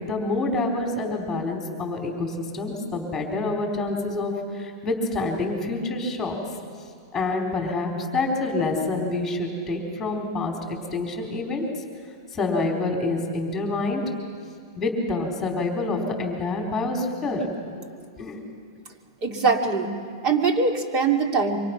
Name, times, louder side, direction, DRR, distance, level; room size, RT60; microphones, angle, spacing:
voice 1, 0.0-6.4 7.1-11.6 12.3-14.0 14.8-17.4 17.8-17.9 18.2-18.4, left 2 dB, 10° left, 1 dB, 3.9 m, -27 dB
voice 2, 19.2-19.9 20.2-21.6, right 4 dB, 35° right, 3 dB, 2.7 m, -22 dB
28.0 x 24.5 x 6.0 m, 2.1 s
hypercardioid pair, 140°, 2 cm